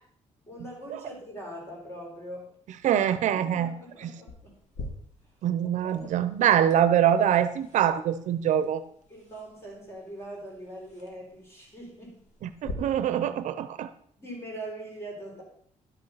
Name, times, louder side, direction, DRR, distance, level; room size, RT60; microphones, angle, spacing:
voice 1, 0.5-2.5 3.3-4.6 5.6-6.2 9.1-12.2 14.2-15.4, right 1 dB, 20° left, -1 dB, 4.3 m, -42 dB
voice 2, 2.8-3.7 4.0-4.1 5.4-8.8 12.6-13.9, right 10 dB, 70° right, 12 dB, 0.7 m, -24 dB
sound 1, 4.3-12.7, left 3 dB, 65° left, 2.7 m, -47 dB
11.5 x 6.6 x 5.8 m, 0.62 s
cardioid pair, 165°, 13 cm